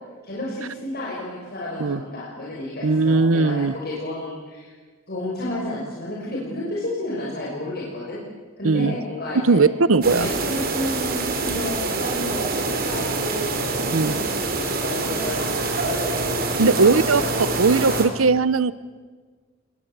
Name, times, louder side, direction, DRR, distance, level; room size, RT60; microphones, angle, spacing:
voice 1, 0.2-4.7 5.1-8.2 8.6-9.7 10.2-18.0, left 1 dB, 50° left, -4 dB, 5.9 m, -32 dB
voice 2, 2.8-3.7 8.6-8.9 9.3-10.3 13.9-14.2 16.6-17.2 17.6-18.7, right 4 dB, 85° right, 17 dB, 0.8 m, -18 dB
sound 1, 10.0-18.1, right 3 dB, 45° right, 3.6 m, -25 dB
30.0 x 21.0 x 8.1 m, 1.5 s
head